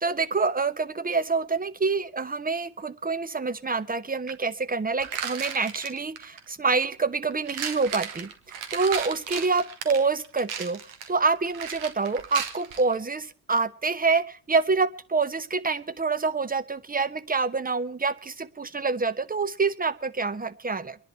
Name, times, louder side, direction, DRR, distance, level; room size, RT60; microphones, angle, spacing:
voice 1, 0.0-10.8 11.1-21.0, right 4 dB, 15° right, 14 dB, 1.0 m, -27 dB
sound 1, 4.3-4.4 5.0-6.5 7.3-13.0, right 7 dB, 75° right, 1.6 m, -35 dB
25.0 x 10.5 x 4.3 m, 0.41 s
hypercardioid pair, 50°, 49 cm